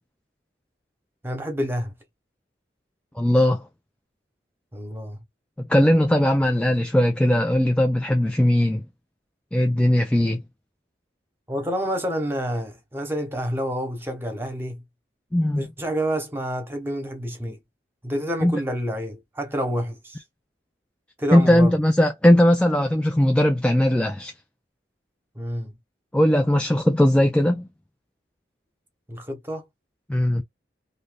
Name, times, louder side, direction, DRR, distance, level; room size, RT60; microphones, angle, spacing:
voice 1, 1.2-1.9 4.7-5.2 11.5-14.8 15.6-17.6 18.0-20.2 21.2-21.7 25.3-25.7 29.1-29.7, equal, 15° right, 1.0 m, -28 dB
voice 2, 3.2-3.7 5.7-8.8 9.5-10.4 15.3-15.7 18.4-18.6 21.3-24.3 26.1-27.7 30.1-30.4, left 1 dB, 5° left, 0.3 m, -19 dB
2.8 x 2.6 x 3.3 m
head